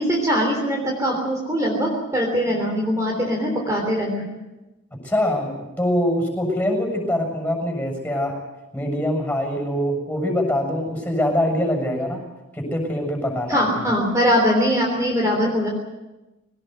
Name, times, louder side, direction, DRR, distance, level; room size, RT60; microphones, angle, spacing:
voice 1, 0.0-4.3 13.5-15.7, equal, 15° right, -1 dB, 3.5 m, -21 dB
voice 2, 5.0-8.4 8.7-12.2 12.5-13.8, left 1 dB, 10° left, 3 dB, 6.9 m, -24 dB
22.0 x 19.0 x 8.1 m, 1.0 s
head